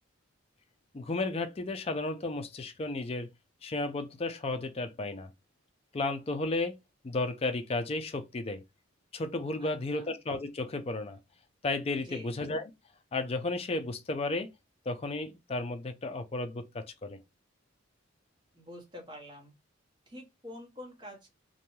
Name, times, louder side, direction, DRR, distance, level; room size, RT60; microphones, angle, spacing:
voice 1, 0.9-3.3 3.6-5.3 5.9-6.8 7.0-8.6 9.1-11.2 11.6-12.7 13.1-14.5 14.9-17.2, left 2 dB, 30° left, 0.4 m, -33 dB
voice 2, 9.6-10.1 12.0-12.3 18.5-19.5 20.1-21.3, left 1 dB, 25° right, 0.9 m, -47 dB
2.6 x 2.2 x 3.0 m
head